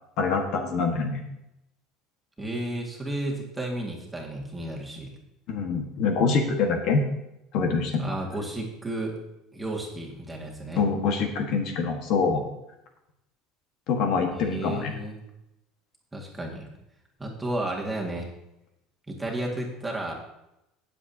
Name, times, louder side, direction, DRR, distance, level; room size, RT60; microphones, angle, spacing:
voice 1, 0.2-1.2 5.5-7.0 7.5-8.1 10.8-12.4 13.9-14.9, left 4 dB, 55° left, 4 dB, 1.5 m, -25 dB
voice 2, 2.4-5.1 8.0-9.2 9.5-10.8 14.3-15.2 16.1-16.7 17.2-18.3 19.1-20.1, right 1 dB, 10° right, -2 dB, 1.9 m, -32 dB
18.0 x 7.4 x 2.8 m, 0.88 s
cardioid pair, 155°, 0 cm